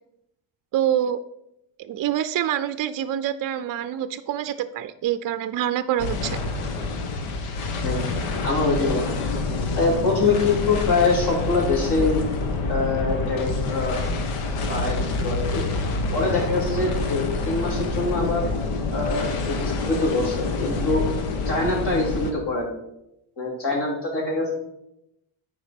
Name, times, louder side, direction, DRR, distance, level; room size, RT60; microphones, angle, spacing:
voice 1, 0.7-1.2 1.8-6.4, right 11 dB, 45° right, 12 dB, 0.5 m, -26 dB
sound 1, 6.0-22.3, left 3 dB, 90° left, 1.3 m, -27 dB
voice 2, 7.8-9.1 9.8-12.2 12.7-14.0 14.7-15.6 16.1-18.4 18.9-21.1 21.5-22.7 23.4-24.5, left 3 dB, 55° left, -2 dB, 3.6 m, -24 dB
9.0 x 5.1 x 5.1 m, 0.82 s
cardioid pair, 120°, 49 cm